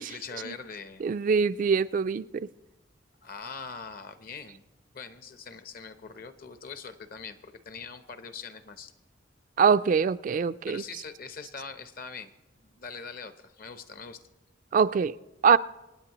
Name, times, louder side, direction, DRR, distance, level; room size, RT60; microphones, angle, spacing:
voice 1, 0.0-1.0 3.2-4.6 4.9-8.9 10.7-12.3 12.6-14.2, left 5 dB, 50° left, 0.8 m, -42 dB
voice 2, 1.0-2.5 9.6-10.8 14.7-15.1 15.4-15.6, right 6 dB, 45° right, 0.3 m, -23 dB
26.0 x 9.4 x 3.0 m
head